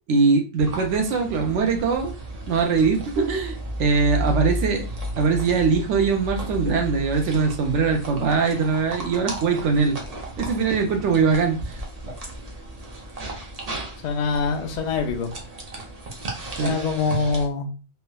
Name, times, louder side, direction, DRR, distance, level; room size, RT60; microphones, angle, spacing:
voice 1, 0.1-2.1 2.5-4.9 5.2-10.0 10.4-11.8 16.6-16.7, right 5 dB, 75° right, 3 dB, 0.9 m, -22 dB
sound 1, 0.6-17.5, equal, 40° right, 0.6 m, -34 dB
voice 2, 14.0-15.3 16.6-17.7, left 4 dB, 60° left, 4 dB, 0.4 m, -24 dB
3.3 x 2.1 x 2.2 m, 0.33 s
omnidirectional pair, 1.3 m